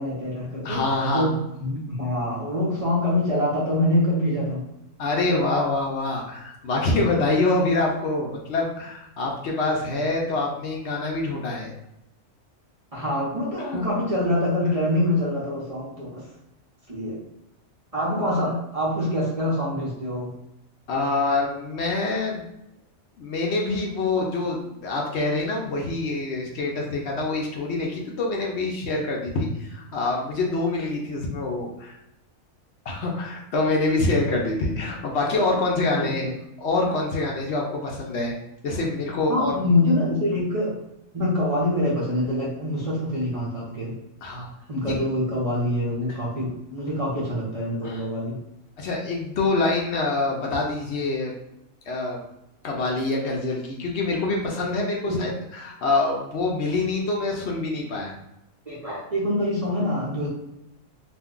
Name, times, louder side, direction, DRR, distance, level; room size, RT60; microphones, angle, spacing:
voice 1, 0.0-0.9 1.1-4.7 5.3-5.4 12.9-16.3 16.9-17.2 17.9-20.3 35.7-36.3 39.3-40.8 41.1-44.0 44.7-48.4 55.0-55.2 58.7-60.3, left 1 dB, 35° right, -6 dB, 0.6 m, -25 dB
voice 2, 0.6-1.3 5.0-11.7 13.7-13.9 20.9-22.4 23.2-32.0 32.9-36.3 36.6-38.4 38.6-39.5 44.2-44.5 44.9-45.0 46.1-46.2 47.8-48.0 48.8-51.3 51.9-52.2 52.6-58.1, left 2 dB, 65° left, -1 dB, 0.8 m, -25 dB
2.5 x 2.2 x 3.6 m, 0.86 s
omnidirectional pair, 1.3 m